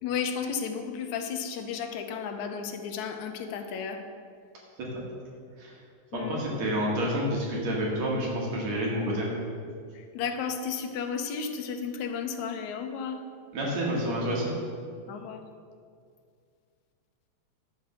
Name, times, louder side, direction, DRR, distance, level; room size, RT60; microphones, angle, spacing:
voice 1, 0.0-4.0 6.1-6.4 9.9-13.2 15.1-15.4, left 6 dB, 80° left, 5 dB, 2.2 m, -33 dB
voice 2, 6.1-9.3 13.5-14.5, equal, 70° right, -3 dB, 3.2 m, -29 dB
11.0 x 4.8 x 7.4 m, 2.2 s
omnidirectional pair, 3.3 m